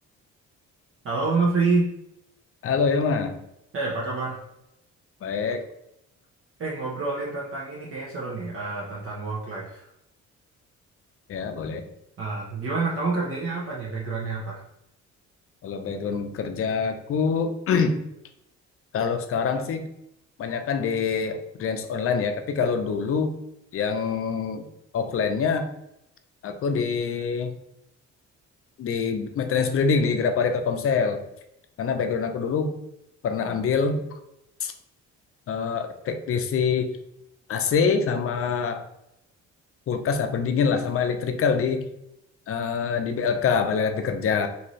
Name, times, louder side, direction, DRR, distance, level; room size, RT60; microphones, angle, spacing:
voice 1, 1.0-1.9 3.7-4.4 6.6-9.9 12.2-14.6, right 3 dB, 45° right, -6 dB, 0.8 m, -27 dB
voice 2, 2.6-3.4 5.2-5.6 11.3-11.8 15.6-18.0 18.9-19.9 20.4-23.3 23.7-24.7 24.9-25.7 26.4-27.5 28.8-31.2 31.8-32.7 33.2-34.0 34.6-34.7 35.5-36.9 37.5-38.8 39.9-41.8 42.5-44.5, left 5 dB, 50° left, 7 dB, 0.5 m, -25 dB
2.7 x 2.5 x 3.1 m, 0.81 s
cardioid pair, 90°, 30 cm